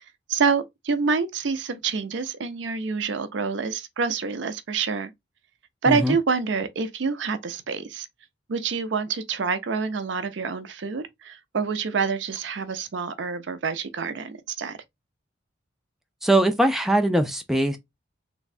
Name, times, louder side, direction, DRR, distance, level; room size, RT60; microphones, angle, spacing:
voice 1, 0.3-5.1 5.8-8.1 8.5-14.8, right 5 dB, 65° right, 0.5 m, -27 dB
voice 2, 16.2-17.8, right 1 dB, ahead, 0.4 m, -21 dB
3.4 x 3.1 x 2.5 m
head